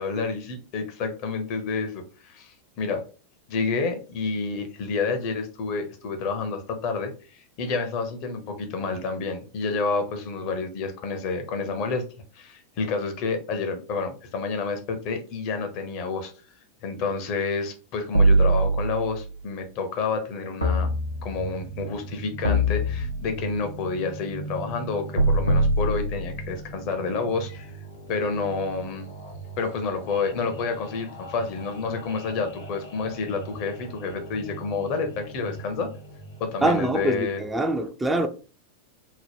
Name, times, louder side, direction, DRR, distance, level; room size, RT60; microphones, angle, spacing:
voice 1, 0.0-3.0 3.5-12.0 12.3-16.3 16.8-27.7 28.1-29.1 29.6-35.9 36.4-37.4, left 4 dB, 45° left, 0.7 m, -29 dB
sound 1, 18.1-19.2 20.6-21.6 22.4-23.5 25.2-26.6, right 1 dB, 90° right, 0.6 m, -22 dB
sound 2, 20.7-36.7, right 4 dB, 65° left, 0.8 m, -40 dB
voice 2, 36.6-38.3, right 2 dB, 10° right, 0.3 m, -24 dB
2.8 x 2.1 x 3.3 m
figure-of-eight pair, 90°, 0 cm